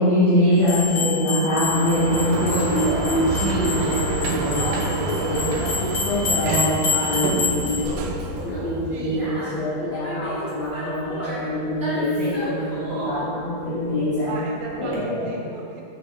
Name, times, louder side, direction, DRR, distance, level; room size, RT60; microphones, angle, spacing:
voice 1, 0.0-8.1 8.4-14.3 14.8-15.3, left 1 dB, 75° left, -8 dB, 1.1 m, -24 dB
sound 1, 0.6-7.9, left 4 dB, 55° left, 2.7 m, -28 dB
Sliding door, 1.5-9.3, right 3 dB, 85° right, 2.3 m, -28 dB
Conversation, 4.4-14.9, equal, 20° right, 0.5 m, -34 dB
voice 2, 8.9-9.4 14.2-15.8, right 3 dB, 70° right, -1 dB, 1.9 m, -35 dB
7.4 x 6.6 x 3.2 m, 2.4 s
omnidirectional pair, 3.8 m